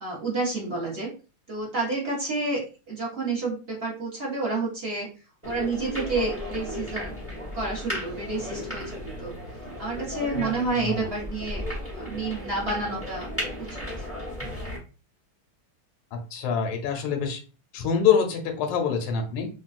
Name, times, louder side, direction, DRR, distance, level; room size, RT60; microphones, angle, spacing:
voice 1, 0.0-1.1 1.5-2.6 2.9-5.1 5.4-7.2 7.5-9.3 9.8-11.6 12.0-13.3 13.6-14.1, right 3 dB, 45° right, -5 dB, 0.8 m, -29 dB
sound 1, 5.4-14.8, left 1 dB, 10° right, 0.6 m, -35 dB
voice 2, 16.1-17.4 17.7-19.5, left 7 dB, 80° left, 5 dB, 1.5 m, -25 dB
3.6 x 2.3 x 2.4 m, 0.34 s
omnidirectional pair, 2.4 m